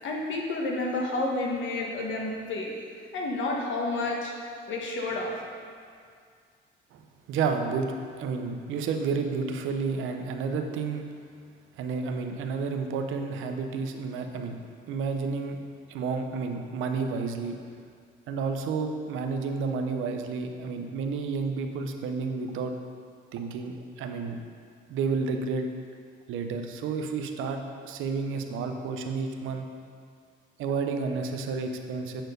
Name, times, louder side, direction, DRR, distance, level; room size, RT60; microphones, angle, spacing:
voice 1, 0.0-2.7 3.1-4.3 4.7-5.3, left 2 dB, 75° left, -1 dB, 1.3 m, -30 dB
voice 2, 7.3-11.1 11.8-14.6 14.9-15.6 15.9-17.6 18.3-22.7 23.3-24.4 24.9-25.7 26.3-29.7 30.6-32.2, right 4 dB, 90° right, 5 dB, 0.7 m, -31 dB
7.8 x 4.4 x 5.2 m, 2.2 s
cardioid pair, 90°, 20 cm